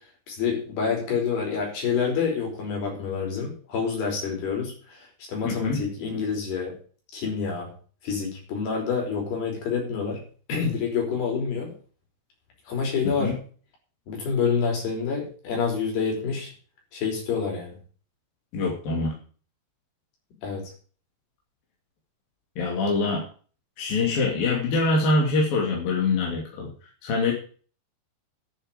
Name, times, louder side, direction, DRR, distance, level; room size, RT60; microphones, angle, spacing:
voice 1, 0.3-6.7 7.1-7.7 8.0-10.2 10.5-11.7 12.7-13.3 14.1-16.5 16.9-17.8 20.4-20.7, left 5 dB, 80° left, 0 dB, 7.0 m, -27 dB
voice 2, 5.4-5.8 13.0-13.3 18.5-19.1 22.6-23.2 23.8-26.7 27.0-27.3, left 3 dB, 65° left, 0 dB, 4.4 m, -24 dB
11.0 x 7.5 x 9.0 m, 0.41 s
omnidirectional pair, 4.5 m